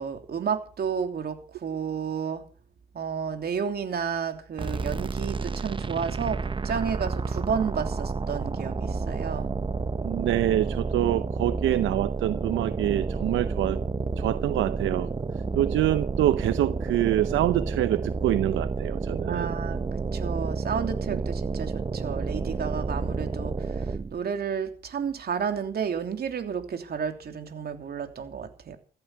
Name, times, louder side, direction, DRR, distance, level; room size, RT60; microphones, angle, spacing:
voice 1, 0.0-2.4 2.9-9.5 19.3-19.9 20.1-23.8 24.1-28.8, right 7 dB, 50° right, 3.0 m, -31 dB
sound 1, 4.6-24.2, right 4 dB, 25° right, 0.8 m, -30 dB
voice 2, 10.0-13.8 14.2-15.1 15.5-19.6 21.1-21.2, right 13 dB, 80° right, 0.7 m, -26 dB
15.0 x 12.5 x 5.8 m
cardioid pair, 90°, 20 cm